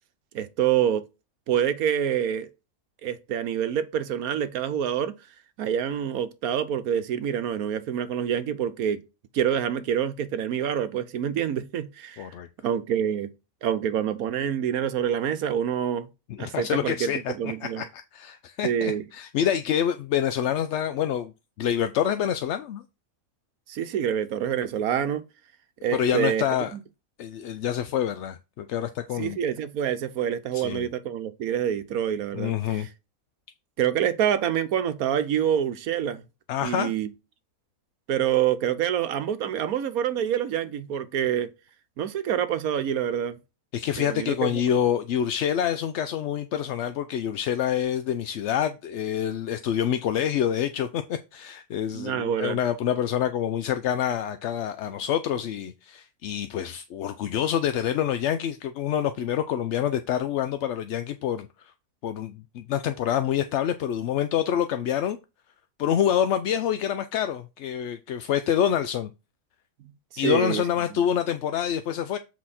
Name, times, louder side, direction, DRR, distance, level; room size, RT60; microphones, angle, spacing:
voice 1, 0.3-1.0 1.5-2.5 3.0-5.1 5.6-9.0 9.3-12.3 12.6-13.3 13.6-16.1 16.4-17.8 18.6-19.0 23.7-25.2 25.8-26.4 26.7-26.8 29.2-32.9 33.8-36.2 36.6-37.1 38.1-41.5 42.0-43.4 44.0-44.6 51.9-52.6 70.2-70.6, right 9 dB, 85° right, 1.3 m, -26 dB
voice 2, 12.2-12.5 16.3-21.3 21.6-22.8 25.9-26.7 27.2-29.4 30.5-30.9 32.3-32.9 36.5-36.9 43.7-61.7 62.0-65.2 65.8-69.1 70.2-72.2, left 9 dB, 65° left, 0.8 m, -27 dB
7.7 x 4.2 x 4.2 m
omnidirectional pair, 1.5 m